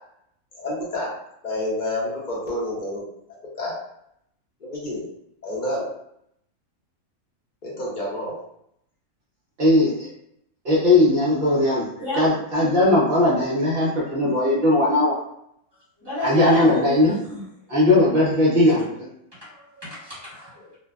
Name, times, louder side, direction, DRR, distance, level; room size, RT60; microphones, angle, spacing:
voice 1, 0.6-1.1 1.4-3.1 3.6-3.7 4.6-5.0 5.4-5.9 7.6-8.3, left 1 dB, 50° left, -4 dB, 0.6 m, -28 dB
voice 2, 9.6-10.1 10.6-11.9 12.2-15.2 16.2-17.1 17.7-19.1, left 1 dB, 50° right, -6 dB, 0.7 m, -18 dB
voice 3, 12.0-12.3 16.0-16.9 17.3-17.5 19.4-20.8, equal, 20° right, -9 dB, 1.3 m, -30 dB
2.5 x 2.1 x 2.3 m, 0.75 s
omnidirectional pair, 1.6 m